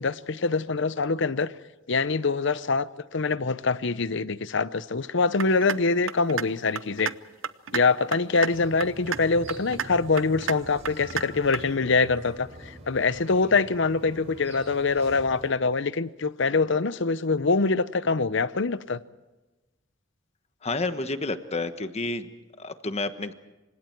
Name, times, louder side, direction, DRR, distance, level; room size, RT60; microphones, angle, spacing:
voice 1, 0.0-1.5 1.9-7.1 7.7-19.0, left 4 dB, 65° left, 0.8 m, -24 dB
sound 1, 5.4-5.8 6.1-6.4 6.8-7.1 7.4-7.8 8.1-8.5 8.8-9.2 9.5-9.9 10.2-10.5 10.9-11.2 11.5-11.6, right 7 dB, 90° right, 0.8 m, -30 dB
sound 2, 8.5-15.5, right 1 dB, 35° right, 5.4 m, -44 dB
voice 2, 20.6-22.3 22.6-23.3, left 2 dB, 35° left, 1.3 m, -30 dB
28.0 x 25.5 x 4.6 m
head